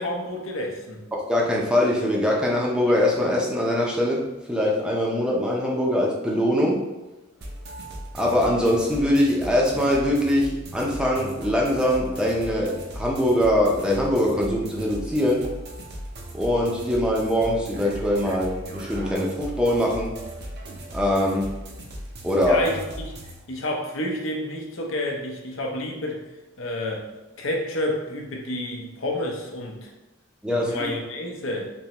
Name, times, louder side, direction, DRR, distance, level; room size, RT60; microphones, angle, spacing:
voice 1, 0.0-1.0 22.5-22.8 23.5-26.2 26.6-27.1 27.4-29.9 30.5-31.7, left 1 dB, 65° left, 0 dB, 0.7 m, -29 dB
voice 2, 1.1-6.8 8.1-15.5 16.3-20.1 20.9-21.5 22.2-22.6 30.4-30.9, left 1 dB, 5° right, -3 dB, 0.6 m, -22 dB
sound 1, 7.4-23.4, right 1 dB, 50° right, 0.6 m, -37 dB
3.5 x 3.1 x 2.9 m, 1.1 s
head